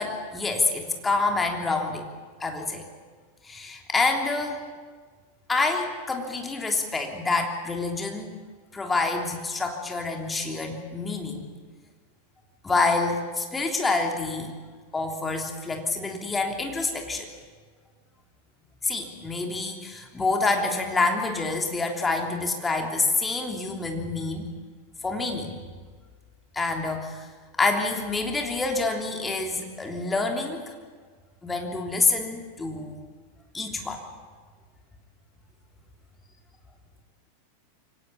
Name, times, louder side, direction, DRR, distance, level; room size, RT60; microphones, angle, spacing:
voice 1, 0.0-2.1 2.4-2.8 3.4-4.6 5.5-8.4 8.7-11.4 12.6-14.5 14.9-17.3 18.8-24.5 25.0-25.5 26.5-27.3 27.6-30.7 31.4-32.9 33.5-34.0, left 3 dB, 15° left, 2 dB, 3.3 m, -27 dB
24.0 x 18.0 x 8.6 m, 1.5 s
figure-of-eight pair, 90°, 0 cm